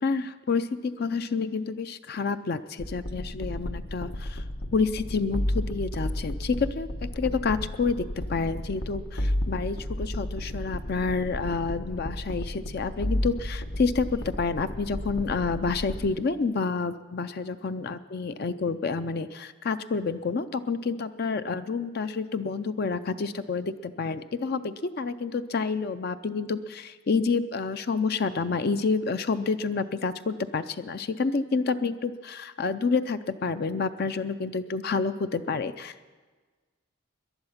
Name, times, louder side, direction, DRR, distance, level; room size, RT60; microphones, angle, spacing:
voice 1, 0.0-4.4 4.7-6.9 7.2-36.1, left 4 dB, 45° left, 11 dB, 0.4 m, -29 dB
sound 1, 2.8-16.1, left 1 dB, 75° left, 1.2 m, -33 dB
18.5 x 11.5 x 5.7 m, 1.4 s
head